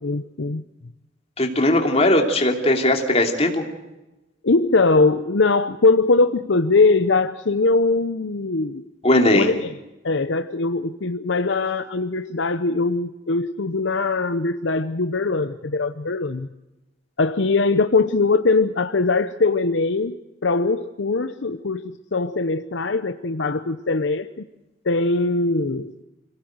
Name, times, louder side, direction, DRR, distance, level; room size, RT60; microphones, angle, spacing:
voice 1, 0.0-0.6 4.4-8.8 9.3-9.7 10.0-16.5 17.2-20.2 20.4-24.3 24.8-26.0, left 3 dB, 65° left, 10 dB, 0.8 m, -21 dB
voice 2, 1.4-3.6 9.0-9.5, left 1 dB, 30° left, 3 dB, 3.0 m, -18 dB
26.0 x 17.5 x 7.9 m, 1.0 s
head